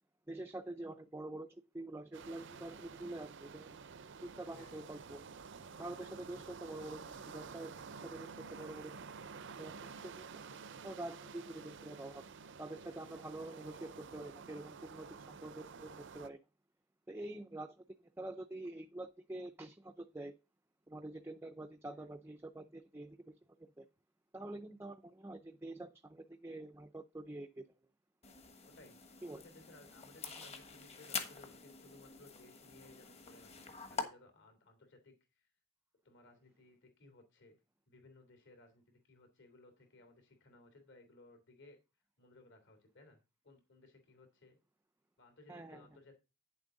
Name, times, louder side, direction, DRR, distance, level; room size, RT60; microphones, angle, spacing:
voice 1, 0.3-1.5 1.7-3.8 4.2-5.2 5.8-9.8 10.0-10.3 10.8-12.2 12.6-16.4 17.1-17.8 18.2-20.3 20.9-23.4 23.8-23.9 24.3-27.7 29.2-29.4 30.2-30.5 45.5-45.9, right 2 dB, 10° right, 0.5 m, -46 dB
sound 1, 2.1-16.3, right 5 dB, 60° right, 0.6 m, -51 dB
voice 2, 4.5-4.9 13.0-13.3 21.9-22.1 28.6-29.0 29.2-35.5 36.0-37.6 37.9-41.8 42.2-43.2 43.4-44.6 45.2-46.1, left 2 dB, 60° left, 3.2 m, -61 dB
sound 2, 7.8-14.3, left 1 dB, 90° right, 0.9 m, -64 dB
sound 3, 28.2-34.0, left 4 dB, 30° left, 1.3 m, -46 dB
9.5 x 7.3 x 3.9 m
head